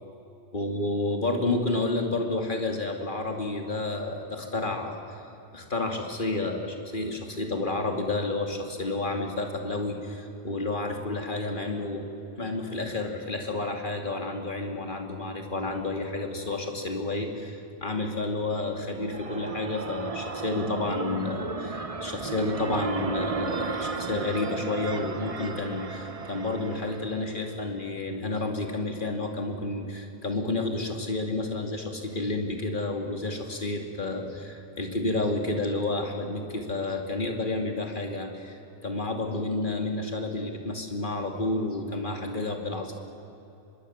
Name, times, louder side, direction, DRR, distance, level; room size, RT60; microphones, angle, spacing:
voice 1, 0.5-5.0 5.5-12.1 12.4-42.9, left 2 dB, 45° left, 3 dB, 2.7 m, -30 dB
sound 1, 18.9-27.6, right 4 dB, 30° right, 1.0 m, -34 dB
24.5 x 21.5 x 7.3 m, 3.0 s
omnidirectional pair, 1.2 m